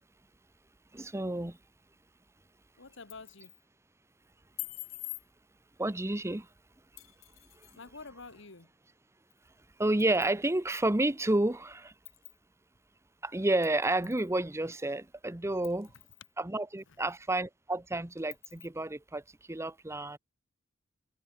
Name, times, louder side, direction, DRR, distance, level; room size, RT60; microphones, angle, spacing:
voice 1, 0.9-1.6 5.8-6.5 9.8-11.9 13.2-15.9 16.4-19.2 19.5-20.2, right 2 dB, 15° right, 0.9 m, -30 dB
voice 2, 2.8-3.6 7.7-8.7 16.9-17.1, left 3 dB, 65° left, 1.8 m, -48 dB
sound 1, 2.9-3.6 4.6-5.3 7.0-7.8 9.3-9.4 10.0-10.4 11.0-11.1 12.0-12.4 13.6-14.3 14.7-14.8 15.6-16.3 16.8-16.9 17.3-17.4 18.3-18.7, left 19 dB, 85° left, 1.0 m, -45 dB
head